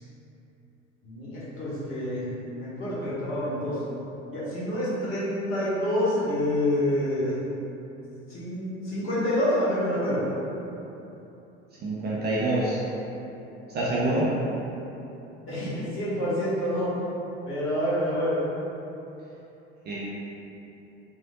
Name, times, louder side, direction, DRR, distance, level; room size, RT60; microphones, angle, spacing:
voice 1, 1.0-3.8 4.3-7.5 8.3-10.2 15.5-16.9 17.5-18.4, left 1 dB, 35° left, -10 dB, 1.3 m, -27 dB
voice 2, 11.8-12.8 13.7-14.3 19.8-20.0, right 2 dB, 30° right, -7 dB, 0.5 m, -26 dB
3.0 x 2.7 x 2.6 m, 3.0 s
figure-of-eight pair, 70°, 37 cm